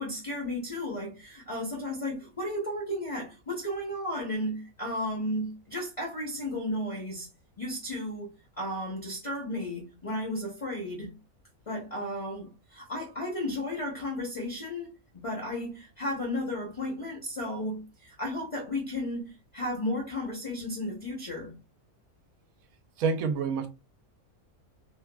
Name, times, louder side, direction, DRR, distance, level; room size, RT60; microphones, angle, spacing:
voice 1, 0.0-7.3 7.6-8.3 8.6-11.1 11.7-21.5, left 1 dB, 30° left, 0.7 m, -34 dB
voice 2, 23.0-23.7, right 5 dB, 75° right, 1.0 m, -27 dB
2.8 x 2.2 x 2.2 m
omnidirectional pair, 1.5 m